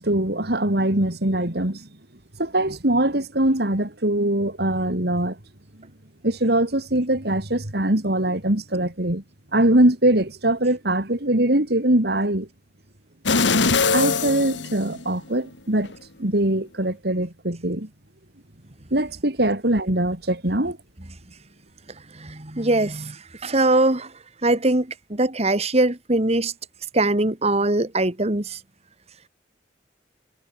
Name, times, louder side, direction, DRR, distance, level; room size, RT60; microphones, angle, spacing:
voice 1, 0.0-1.9 2.4-5.4 6.2-9.2 9.5-12.5 13.9-15.9 16.2-17.9 18.9-20.8, right 1 dB, 60° right, 3.4 m, -22 dB
sound 1, 13.3-15.4 15.8-16.0, left 4 dB, 90° left, 2.0 m, -22 dB
voice 2, 22.2-23.2 23.4-24.1 24.4-26.5 26.9-28.6, right 2 dB, 35° right, 2.1 m, -21 dB
head